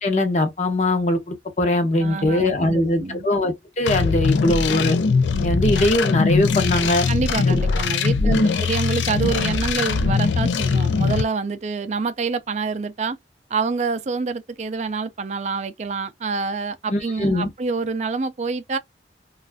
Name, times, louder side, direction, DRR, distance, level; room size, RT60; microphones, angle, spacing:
voice 1, 0.0-5.0 5.4-7.1 7.4-7.6 8.2-8.6 16.9-17.5, left 1 dB, 40° left, 0.7 m, -21 dB
voice 2, 2.0-3.3 4.2-4.7 5.7-5.9 7.1-13.2 13.5-18.8, right 4 dB, 40° right, 0.4 m, -27 dB
sound 1, 3.9-11.2, left 4 dB, 90° left, 0.4 m, -21 dB
2.5 x 2.3 x 3.3 m
head